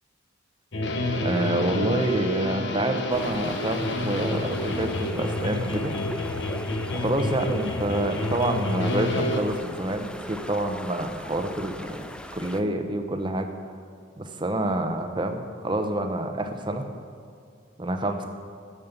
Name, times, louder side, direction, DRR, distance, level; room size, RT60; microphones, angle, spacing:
sound 1, 0.7-9.4, left 1 dB, 60° left, 1.0 m, -29 dB
voice 1, 1.2-5.9 6.9-13.5 14.2-16.9 17.8-18.2, right 1 dB, 25° right, 6 dB, 0.8 m, -27 dB
sound 2, 3.1-12.6, left 1 dB, 5° left, 0.4 m, -40 dB
13.0 x 7.4 x 6.8 m, 2.3 s
head